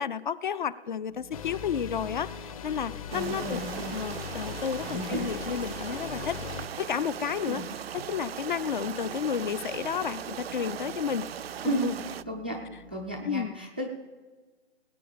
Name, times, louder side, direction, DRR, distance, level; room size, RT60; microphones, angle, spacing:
voice 1, 0.0-3.6 3.9-7.6 7.9-11.3 11.6-12.0 13.2-13.6, left 7 dB, 50° left, 18 dB, 0.5 m, -32 dB
sound 1, 1.1-13.2, left 1 dB, 90° left, 3.3 m, -52 dB
sound 2, 1.3-6.7, left 8 dB, 35° left, 0.9 m, -40 dB
voice 2, 3.1-4.0 4.8-5.3 7.5-7.6 11.6-11.9 12.3-12.6 12.9-13.9, right 1 dB, 10° right, 2 dB, 0.3 m, -33 dB
sound 3, 3.1-12.2, right 9 dB, 65° right, 0.5 m, -38 dB
18.5 x 8.8 x 5.1 m, 1.3 s
hypercardioid pair, 150°, 32 cm